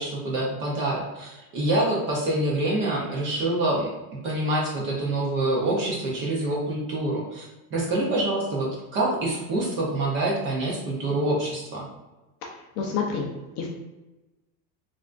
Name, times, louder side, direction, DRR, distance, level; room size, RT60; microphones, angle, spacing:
voice 1, 0.0-3.9 4.2-7.4 7.7-11.9, right 1 dB, 25° right, -3 dB, 0.4 m, -26 dB
voice 2, 12.8-13.7, left 5 dB, 40° left, -1 dB, 0.4 m, -29 dB
3.4 x 2.5 x 2.4 m, 1.1 s
supercardioid pair, 135°, 50 cm